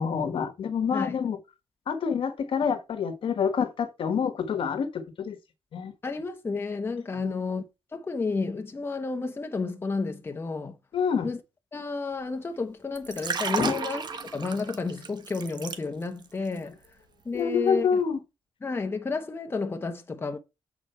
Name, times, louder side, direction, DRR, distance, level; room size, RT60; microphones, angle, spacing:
voice 1, 0.0-1.4 1.9-5.4 5.7-5.9 7.2-7.4 10.9-11.3 13.6-13.8 17.3-18.2, left 6 dB, 70° left, 1.4 m, -27 dB
voice 2, 0.9-1.2 6.0-7.6 7.9-10.8 11.2-11.4 11.7-14.0 14.3-16.8 17.2-17.9 18.6-20.4, left 4 dB, 25° left, 1.1 m, -31 dB
Liquid, 12.9-16.3 16.6-16.9, right 5 dB, 50° right, 1.2 m, -33 dB
8.1 x 4.9 x 4.4 m
wide cardioid pair, 140°, 9 cm